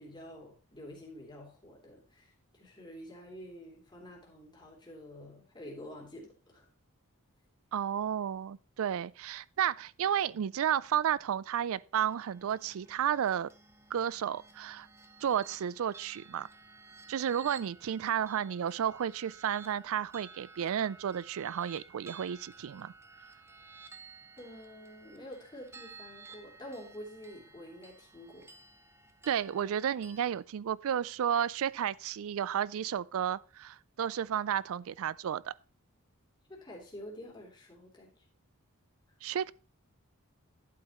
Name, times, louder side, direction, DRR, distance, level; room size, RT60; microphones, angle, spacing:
voice 1, 0.0-6.7 18.0-18.1 24.4-28.5 36.5-38.1, equal, 20° left, 3.2 m, -48 dB
voice 2, 7.7-13.5 13.9-14.9 15.2-16.5 17.1-22.9 29.3-35.5 39.2-39.5, right 9 dB, 65° right, 0.4 m, -32 dB
sound 1, 12.0-30.4, right 4 dB, 10° right, 0.8 m, -54 dB
11.5 x 8.5 x 3.0 m
head